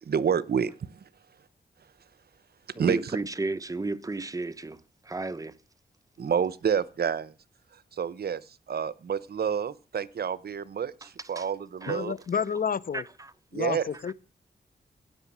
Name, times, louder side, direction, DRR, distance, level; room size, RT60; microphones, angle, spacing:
voice 1, 0.0-1.0 2.8-3.2 6.2-7.3 7.9-12.1 13.5-13.9, right 7 dB, 70° right, 0.8 m, -29 dB
voice 2, 2.8-5.6 11.4-11.5 11.8-12.0 12.9-13.3 14.1-14.2, right 3 dB, 20° right, 1.0 m, -33 dB
voice 3, 11.9-13.0 13.5-14.1, left 7 dB, 55° left, 0.7 m, -30 dB
16.5 x 8.6 x 7.3 m
wide cardioid pair, 100°, 17 cm